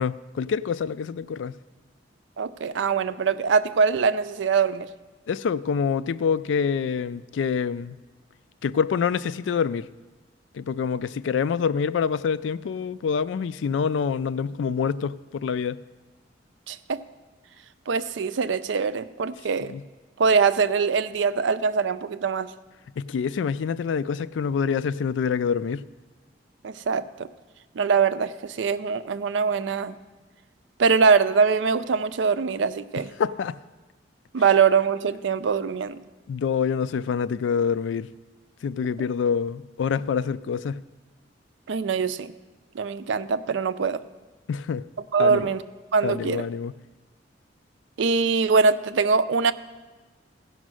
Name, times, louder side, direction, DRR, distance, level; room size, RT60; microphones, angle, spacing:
voice 1, 0.0-1.6 5.3-8.0 8.6-9.9 10.5-15.8 19.6-19.8 23.0-25.9 33.0-33.6 36.3-38.1 38.6-40.8 44.5-44.9 45.2-45.5 46.0-46.7, left 6 dB, 85° left, 0.3 m, -26 dB
voice 2, 2.4-4.9 16.7-17.0 17.9-19.8 20.2-22.5 26.6-27.3 27.8-30.0 30.8-33.1 34.3-36.0 41.7-42.3 42.7-44.0 45.1-45.6 45.9-46.4 48.0-49.5, right 5 dB, 85° right, 0.4 m, -23 dB
16.0 x 5.4 x 6.2 m
head